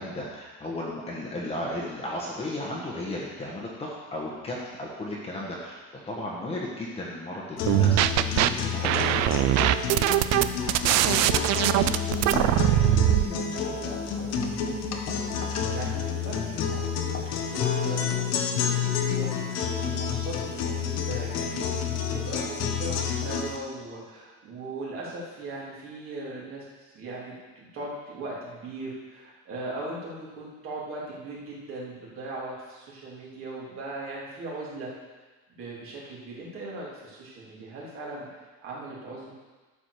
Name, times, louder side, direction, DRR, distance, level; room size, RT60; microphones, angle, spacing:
voice 1, 0.0-9.4, left 1 dB, 20° left, -4 dB, 1.4 m, -35 dB
sound 1, 7.6-23.6, left 7 dB, 60° left, 1.2 m, -29 dB
sound 2, 7.7-8.5 8.8-13.3, right 14 dB, 65° right, 0.5 m, -21 dB
voice 2, 10.9-34.9 35.5-39.3, right 2 dB, 45° right, -6 dB, 3.3 m, -39 dB
12.0 x 5.0 x 6.6 m, 1.3 s
cardioid pair, 165°, 29 cm